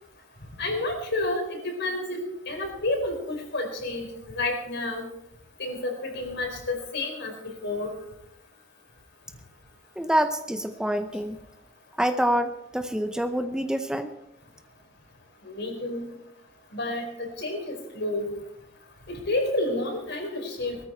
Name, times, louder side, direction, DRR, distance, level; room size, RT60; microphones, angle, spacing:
voice 1, 0.6-2.2 2.5-5.0 5.6-7.9 15.4-16.0 16.7-18.3 19.1-20.8, left 2 dB, 60° left, 3 dB, 4.3 m, -30 dB
voice 2, 10.0-11.4 12.0-14.1, equal, 5° right, 8 dB, 0.6 m, -26 dB
19.5 x 13.5 x 4.4 m, 0.80 s
head